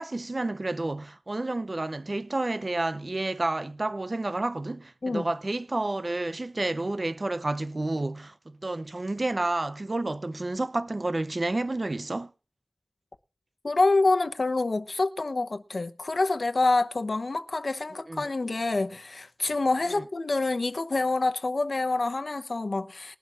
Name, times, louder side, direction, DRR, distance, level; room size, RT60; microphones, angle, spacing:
voice 1, 0.0-12.3 18.1-18.3 19.9-20.0, right 2 dB, 50° right, 0.6 m, -30 dB
voice 2, 13.6-23.2, left 3 dB, 75° left, 0.9 m, -26 dB
21.0 x 11.5 x 2.5 m
wide cardioid pair, 50°, 0 cm